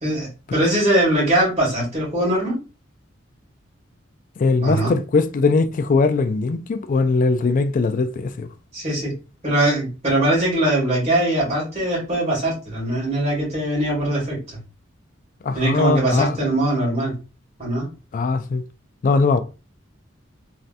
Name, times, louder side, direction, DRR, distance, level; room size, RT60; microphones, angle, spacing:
voice 1, 0.0-2.6 4.6-4.9 8.7-9.1 9.4-14.6 15.5-17.1 17.6-17.9, right 1 dB, 35° right, 1.8 m, -21 dB
voice 2, 4.4-8.5 15.4-16.4 18.1-18.6 19.0-19.4, left 3 dB, 40° left, 0.3 m, -20 dB
3.2 x 2.6 x 2.5 m
head